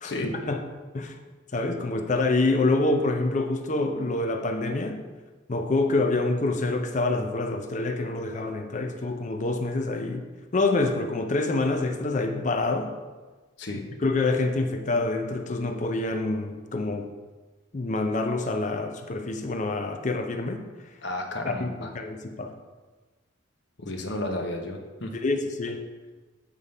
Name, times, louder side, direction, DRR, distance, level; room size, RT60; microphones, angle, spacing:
voice 1, 0.0-0.3 13.6-13.8 21.0-21.9 23.8-25.1, left 1 dB, 55° left, 3 dB, 0.9 m, -32 dB
voice 2, 1.5-5.0 5.5-10.2 10.5-12.9 14.0-17.1 17.7-20.6 21.5-22.5 25.1-25.8, left 2 dB, 35° left, 5 dB, 0.5 m, -26 dB
8.2 x 3.7 x 5.4 m, 1.3 s
head